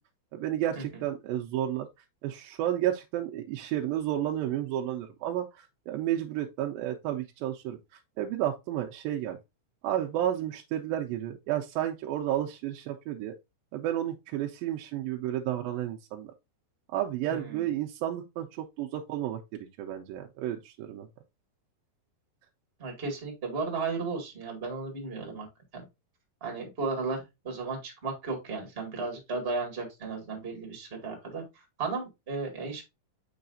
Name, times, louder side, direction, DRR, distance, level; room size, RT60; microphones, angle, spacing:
voice 1, 0.3-1.9 2.2-7.8 8.2-9.4 9.8-13.3 13.7-16.3 16.9-21.1, right 12 dB, 85° right, 2.3 m, -31 dB
voice 2, 17.3-17.7 22.8-25.5 25.7-25.8 26.4-32.8, right 4 dB, 20° right, 1.7 m, -34 dB
6.9 x 5.6 x 2.6 m
omnidirectional pair, 4.2 m